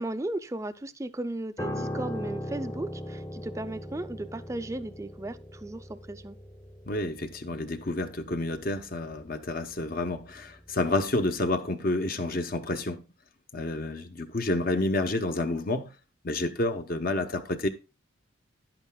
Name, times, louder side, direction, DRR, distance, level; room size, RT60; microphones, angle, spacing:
voice 1, 0.0-6.4, right 1 dB, 15° right, 0.4 m, -35 dB
Piano, 1.6-11.0 11.2-11.5, left 1 dB, 15° left, 0.8 m, -39 dB
voice 2, 6.9-13.0 13.5-15.9 16.2-17.7, left 2 dB, 45° left, 0.8 m, -29 dB
11.0 x 8.9 x 2.3 m
head